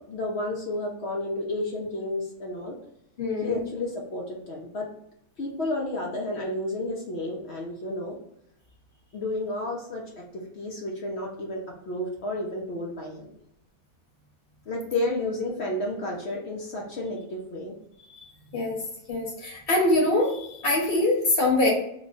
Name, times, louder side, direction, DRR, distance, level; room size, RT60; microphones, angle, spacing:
voice 1, 0.1-2.8 3.4-4.9 5.4-8.2 9.1-13.3 14.7-17.7, left 1 dB, 60° left, -1 dB, 0.7 m, -31 dB
voice 2, 3.2-3.6 18.1-18.2 18.5-18.8 19.1-21.7, left 2 dB, 45° left, -3 dB, 1.1 m, -24 dB
3.0 x 2.3 x 3.8 m, 0.75 s
omnidirectional pair, 1.6 m